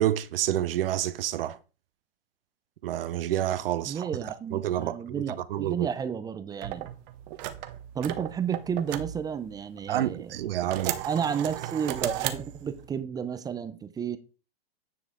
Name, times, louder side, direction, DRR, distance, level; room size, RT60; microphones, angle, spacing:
voice 1, 0.0-1.6 2.8-4.1 4.5-5.2 5.5-5.9 9.9-11.0, right 12 dB, 65° right, 0.7 m, -28 dB
voice 2, 3.8-6.9 7.9-14.2, right 7 dB, 15° right, 0.5 m, -32 dB
sound 1, 6.6-9.9 10.3-12.9, right 13 dB, 45° right, 1.1 m, -35 dB
9.6 x 5.2 x 3.7 m
hypercardioid pair, 125°, 30 cm